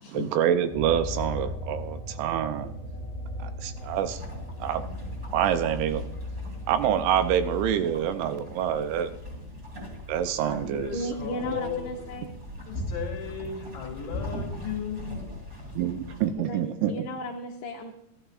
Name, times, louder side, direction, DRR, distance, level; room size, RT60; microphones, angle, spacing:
voice 1, 0.1-2.7 3.4-4.2 4.6-4.8 5.3-6.1 6.7-9.2 10.1-10.9 15.8-16.9, right 9 dB, 80° right, 10 dB, 2.9 m, -26 dB
sound 1, 0.7-11.6 12.0-13.4, equal, 25° left, 1.1 m, -43 dB
sound 2, 0.7-7.8, left 2 dB, 50° right, 3.1 m, -39 dB
sound 3, 3.8-16.3, left 1 dB, 20° right, 2.6 m, -40 dB
voice 2, 10.4-12.0 12.7-15.3, left 6 dB, 55° left, 2 dB, 3.0 m, -36 dB
voice 3, 10.9-12.3 16.4-17.9, left 1 dB, 80° left, 1 dB, 2.5 m, -35 dB
14.5 x 12.0 x 2.4 m, 0.82 s
omnidirectional pair, 5.4 m